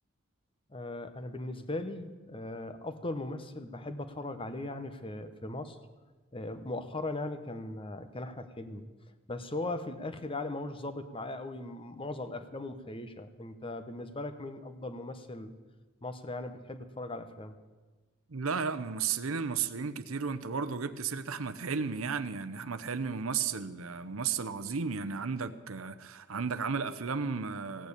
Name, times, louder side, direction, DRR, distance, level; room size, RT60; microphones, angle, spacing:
voice 1, 0.7-5.8 6.3-8.8 9.3-15.6 16.0-17.6, left 2 dB, 25° left, 10 dB, 0.9 m, -39 dB
voice 2, 18.3-27.9, right 5 dB, 85° right, 13 dB, 0.8 m, -34 dB
16.5 x 9.1 x 8.3 m, 1.3 s
head